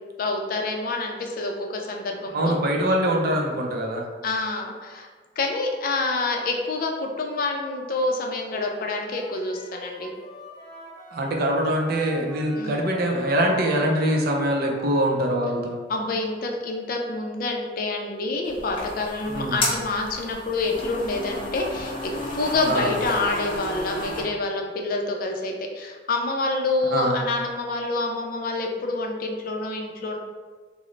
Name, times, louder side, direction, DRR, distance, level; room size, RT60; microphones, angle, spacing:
voice 1, 0.2-2.6 4.2-5.1 5.4-10.1 12.6-12.9 15.9-30.2, left 3 dB, 50° left, 1 dB, 0.4 m, -27 dB
voice 2, 2.3-4.1 11.1-15.8 19.3-19.6 22.7-22.9 26.9-27.2, right 1 dB, 55° right, 1 dB, 0.5 m, -23 dB
Wind instrument woodwind instrument, 8.5-15.3, left 1 dB, 20° right, 0.8 m, -43 dB
sound 1, 18.4-24.2, left 1 dB, 30° left, 0.8 m, -32 dB
3.1 x 2.0 x 3.8 m, 1.5 s
head